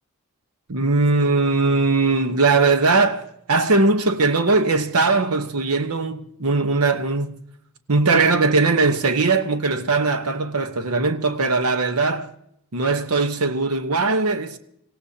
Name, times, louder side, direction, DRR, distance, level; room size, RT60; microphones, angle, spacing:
voice 1, 0.7-7.4 7.9-12.3 12.7-14.6, right 3 dB, 80° right, 1.1 m, -20 dB
26.5 x 17.0 x 2.8 m
head